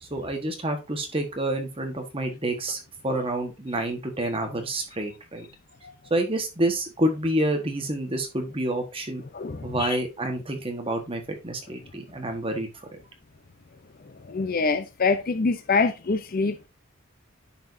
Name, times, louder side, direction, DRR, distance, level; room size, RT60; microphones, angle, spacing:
voice 1, 0.0-5.5 6.1-9.2 9.6-12.7, right 1 dB, 25° right, 1.4 m, -28 dB
voice 2, 9.3-10.0 14.2-16.7, left 4 dB, 40° left, 0.6 m, -25 dB
10.0 x 5.1 x 2.7 m
head